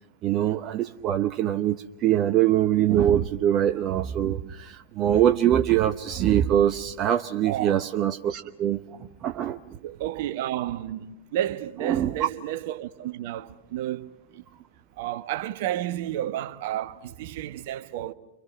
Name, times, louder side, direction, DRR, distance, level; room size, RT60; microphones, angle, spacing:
voice 1, 0.2-8.8 9.2-9.6 11.8-12.3, right 11 dB, 35° right, 0.8 m, -23 dB
voice 2, 7.4-7.9 9.8-14.1 14.3-14.4 15.0-18.1, right 12 dB, 50° right, 1.1 m, -31 dB
29.5 x 25.0 x 6.1 m
figure-of-eight pair, 90°, 0 cm